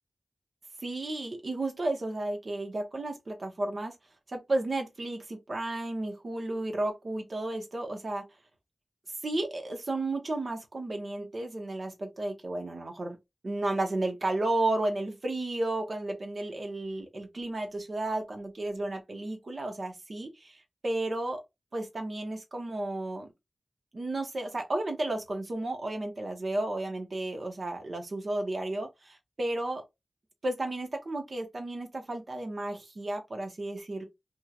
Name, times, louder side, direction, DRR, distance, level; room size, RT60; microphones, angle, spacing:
voice 1, 0.8-3.9 4.3-8.2 9.2-13.2 13.4-21.4 21.7-23.3 23.9-29.8 30.4-34.0, right 2 dB, 60° right, 1.0 m, -33 dB
3.1 x 2.7 x 2.4 m
cardioid pair, 55°, 0 cm